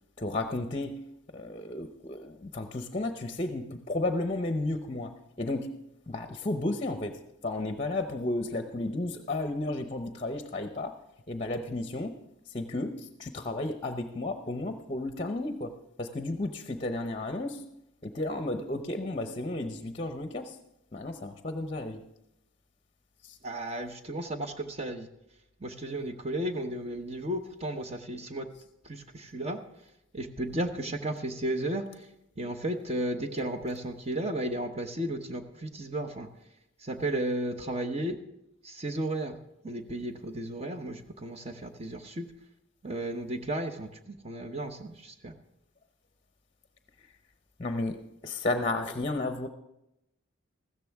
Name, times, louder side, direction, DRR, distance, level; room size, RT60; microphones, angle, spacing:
voice 1, 0.2-1.0 1.3-5.1 5.4-5.7 6.1-10.9 11.3-12.1 12.5-15.7 16.0-17.6 18.0-20.6 20.9-22.0 23.2-23.4 47.6-48.0 48.2-49.5, left 2 dB, 30° left, 7 dB, 0.7 m, -33 dB
voice 2, 23.4-25.1 25.6-28.5 28.9-29.6 30.1-31.8 32.4-36.3 36.8-38.2 38.6-39.4 39.6-42.3 42.8-45.3, right 1 dB, 30° right, 7 dB, 0.9 m, -34 dB
15.0 x 13.5 x 3.5 m, 0.86 s
head